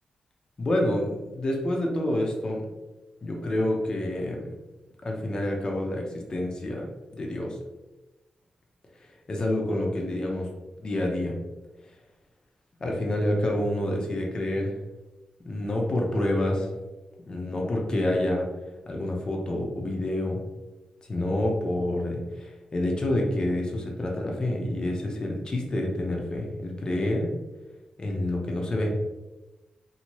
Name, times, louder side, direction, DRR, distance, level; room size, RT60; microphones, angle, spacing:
voice 1, 0.6-2.6 3.2-4.5 5.0-6.9 7.1-7.6 9.0-10.5 10.8-11.4 12.8-14.7 15.4-16.7 17.3-18.5 18.9-20.4 21.1-27.3 28.0-28.9, left 1 dB, 35° left, 0 dB, 0.7 m, -28 dB
2.8 x 2.7 x 3.0 m, 1.1 s
wide cardioid pair, 125°, 2 cm